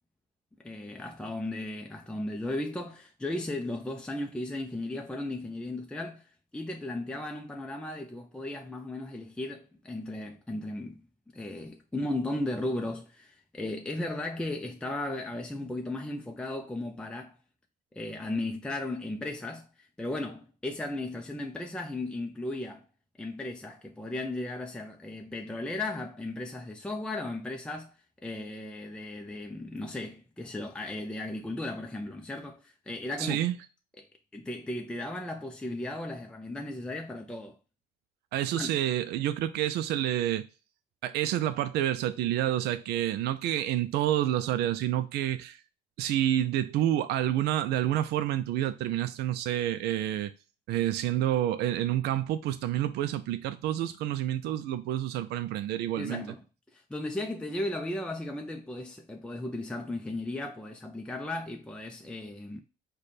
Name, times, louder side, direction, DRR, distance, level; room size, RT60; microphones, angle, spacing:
voice 1, 0.6-11.0 11.3-17.4 17.9-22.8 23.2-28.0 28.2-33.4 34.0-37.5 38.5-38.7 56.0-56.4 56.7-62.6, left 2 dB, 5° left, 0.4 m, -36 dB
voice 2, 33.2-33.6 38.3-40.5 41.0-45.6 46.0-50.3 50.7-56.2, right 12 dB, 75° right, 0.4 m, -28 dB
4.9 x 2.2 x 4.1 m
cardioid pair, 110°, 17 cm